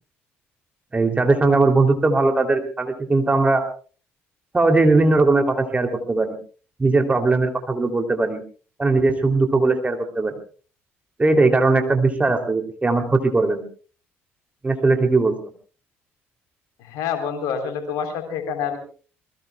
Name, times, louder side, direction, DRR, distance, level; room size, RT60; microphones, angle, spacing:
voice 1, 0.9-3.6 4.5-6.4 6.8-8.4 8.8-10.3 11.2-13.6 14.6-15.3, right 3 dB, 20° right, 5 dB, 3.1 m, -19 dB
voice 2, 16.9-18.8, left 7 dB, 60° left, 7 dB, 3.7 m, -27 dB
27.5 x 21.0 x 2.3 m, 0.39 s
figure-of-eight pair, 50°, 7 cm